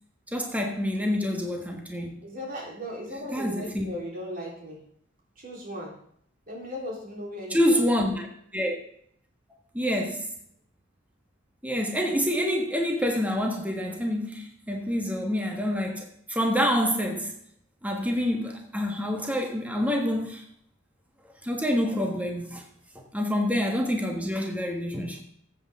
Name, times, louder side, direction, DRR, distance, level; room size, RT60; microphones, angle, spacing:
voice 1, 0.3-2.1 3.3-3.9 7.5-8.3 8.5-8.7 9.7-10.3 11.6-17.3 17.8-20.4 21.4-22.6 22.9-25.2, equal, 10° right, 1 dB, 1.4 m, -27 dB
voice 2, 2.2-4.8 5.4-6.0 6.5-7.8, equal, 45° right, -3 dB, 3.8 m, -37 dB
13.5 x 8.3 x 3.7 m, 0.65 s
head